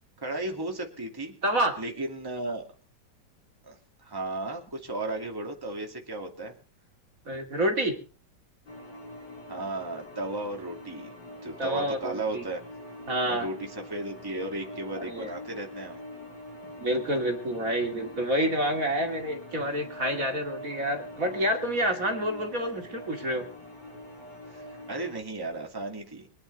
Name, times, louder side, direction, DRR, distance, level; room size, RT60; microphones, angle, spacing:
voice 1, 0.2-1.3 1.8-2.7 3.6-6.6 9.5-11.1 11.4-12.6 13.2-16.0 16.6-16.7 24.5-26.3, right 2 dB, 10° right, 2 dB, 2.6 m, -35 dB
voice 2, 1.4-1.8 7.3-8.0 11.6-12.4 13.1-13.5 15.0-15.3 16.8-23.4, equal, 45° right, 3 dB, 3.0 m, -28 dB
sound 1, 8.7-25.2, left 1 dB, 60° left, 4.8 m, -44 dB
24.5 x 10.5 x 4.1 m, 0.37 s
omnidirectional pair, 2.0 m